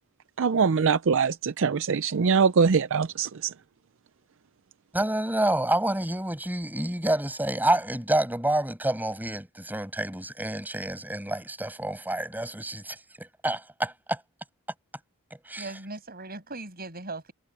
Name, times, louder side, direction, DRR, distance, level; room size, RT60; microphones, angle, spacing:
voice 1, 0.4-3.5, right 5 dB, 60° right, 0.5 m, -23 dB
voice 2, 4.9-14.2 15.4-15.8, right 1 dB, 10° right, 7.9 m, -28 dB
voice 3, 15.6-17.3, right 2 dB, 45° right, 7.6 m, -38 dB
head